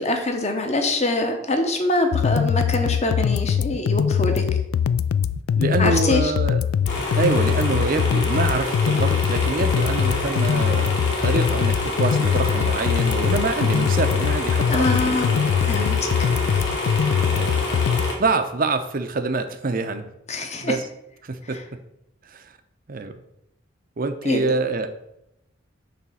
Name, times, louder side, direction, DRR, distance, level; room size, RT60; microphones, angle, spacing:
voice 1, 0.0-4.4 5.8-6.3 14.7-15.3 15.6-16.0 20.3-20.8 21.5-21.6 24.2-24.5, left 2 dB, 35° left, 5 dB, 0.9 m, -24 dB
sound 1, 2.1-18.1, left 8 dB, 85° left, 0.3 m, -22 dB
voice 2, 5.6-6.6 7.2-15.5 17.3-17.6 18.2-20.1 20.3-20.8 21.2-21.6 22.3-22.5 22.9-23.1 24.0-24.9, right 3 dB, 45° right, 9 dB, 0.6 m, -26 dB
sound 2, 6.9-18.1, left 1 dB, 55° left, 2.2 m, -27 dB
6.9 x 3.4 x 6.2 m, 0.83 s
head